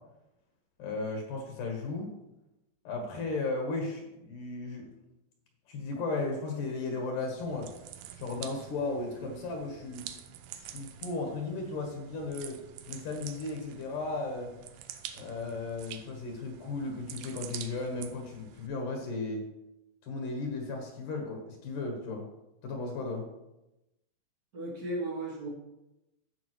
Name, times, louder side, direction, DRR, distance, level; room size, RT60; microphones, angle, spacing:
voice 1, 0.8-2.1 2.8-4.9 5.7-7.7 8.2-10.0 10.6-12.6 12.9-14.5 15.1-19.4 20.0-22.3 22.6-23.3, left 3 dB, 65° left, 1 dB, 2.5 m, -35 dB
sound 1, 7.4-18.7, right 10 dB, 90° right, 1.8 m, -47 dB
voice 2, 24.5-25.5, right 2 dB, 50° right, -3 dB, 1.1 m, -35 dB
15.5 x 5.2 x 3.0 m, 0.93 s
omnidirectional pair, 4.3 m